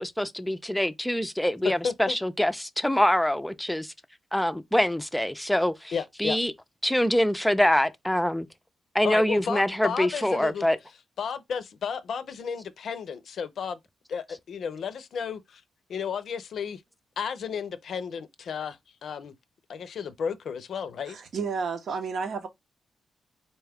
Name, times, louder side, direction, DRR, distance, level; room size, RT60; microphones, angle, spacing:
voice 1, 0.0-3.9 4.3-6.5 6.8-8.5 8.9-10.8, left 1 dB, 5° left, 0.4 m, -25 dB
voice 2, 1.6-2.2 5.9-6.4 9.0-10.7 11.2-13.8 14.1-15.6 15.9-16.8 17.2-19.3 19.7-21.2, left 6 dB, 70° left, 0.5 m, -33 dB
voice 3, 21.1-22.5, right 5 dB, 70° right, 0.7 m, -31 dB
4.0 x 2.3 x 3.4 m
cardioid pair, 85°, 0 cm